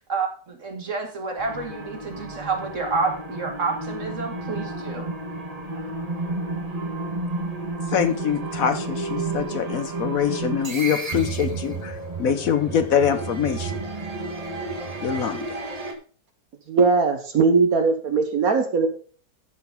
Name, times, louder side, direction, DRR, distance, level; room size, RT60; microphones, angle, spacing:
voice 1, 0.1-5.1, right 4 dB, 55° right, 3 dB, 2.5 m, -29 dB
sound 1, 1.4-15.9, right 3 dB, 25° right, 1.5 m, -31 dB
voice 2, 7.9-13.8 15.0-15.6, left 8 dB, 65° left, 9 dB, 1.3 m, -24 dB
voice 3, 16.7-18.9, right 4 dB, 70° right, 6 dB, 1.7 m, -19 dB
13.0 x 4.7 x 5.4 m, 0.40 s
omnidirectional pair, 1.6 m